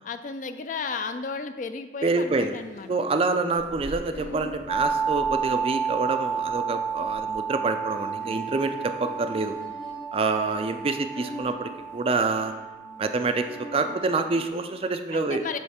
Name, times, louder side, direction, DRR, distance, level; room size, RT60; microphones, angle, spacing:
voice 1, 0.0-2.9 15.1-15.6, left 4 dB, 45° left, 9 dB, 0.4 m, -33 dB
voice 2, 2.0-2.6 2.9-9.5 10.1-12.5 13.0-15.4, right 3 dB, 30° right, 8 dB, 0.3 m, -27 dB
sound 1, 2.3-14.8, left 1 dB, 75° left, 1.8 m, -44 dB
sound 2, 4.7-14.5, right 6 dB, 75° right, 0.6 m, -31 dB
7.6 x 3.1 x 5.7 m, 1.2 s
head